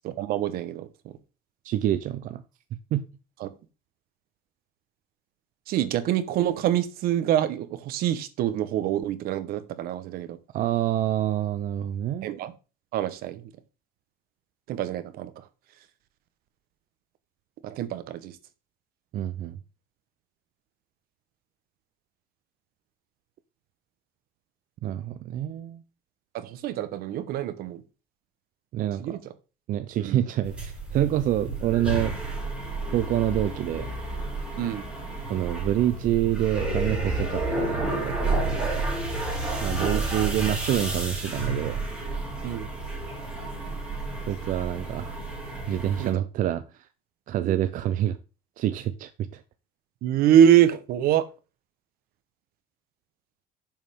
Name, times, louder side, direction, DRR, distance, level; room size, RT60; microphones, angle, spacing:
voice 1, 0.0-1.2 3.4-3.5 5.7-10.4 12.2-12.5 12.9-13.5 14.7-15.5 17.6-18.4 26.3-27.8 29.0-29.3 29.9-30.3 34.6-34.8 39.8-40.0 42.4-42.7 46.0-46.2 47.4-47.5 50.0-51.3, right 10 dB, 85° right, 1.2 m, -25 dB
voice 2, 1.6-2.4 2.9-3.0 10.5-12.3 19.1-19.6 24.8-25.8 28.7-29.2 29.7-32.1 32.9-33.9 35.3-38.9 39.6-41.8 44.2-45.2 45.7-46.9 47.3-48.2 48.6-49.4, right 12 dB, 60° right, 0.7 m, -27 dB
sound 1, 30.4-46.1, right 2 dB, 5° right, 4.9 m, -30 dB
10.5 x 7.2 x 3.7 m
cardioid pair, 160°, 15 cm